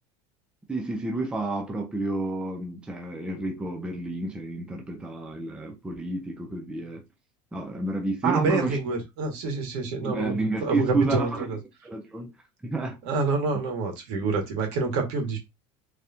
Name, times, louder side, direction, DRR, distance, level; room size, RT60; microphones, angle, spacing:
voice 1, 0.7-7.0 7.5-8.8 10.0-11.4 11.8-12.3 12.6-13.0, right 2 dB, 5° right, 0.6 m, -30 dB
voice 2, 8.2-11.6 13.0-15.4, right 4 dB, 65° right, 1.9 m, -27 dB
4.0 x 3.4 x 2.8 m
cardioid pair, 160°, 15 cm